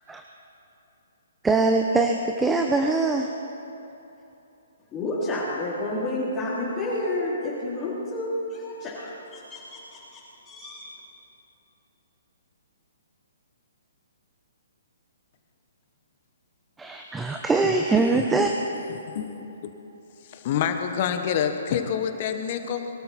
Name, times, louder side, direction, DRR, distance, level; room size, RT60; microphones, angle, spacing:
voice 1, 1.4-3.3 16.8-18.5, right 3 dB, 10° right, 3 dB, 0.8 m, -22 dB
voice 2, 4.9-10.9, left 1 dB, 20° left, -9 dB, 3.6 m, -30 dB
voice 3, 18.8-19.7 20.3-22.9, left 8 dB, 45° left, 7 dB, 1.4 m, -27 dB
23.0 x 12.5 x 4.4 m, 3.0 s
figure-of-eight pair, 130°, 0 cm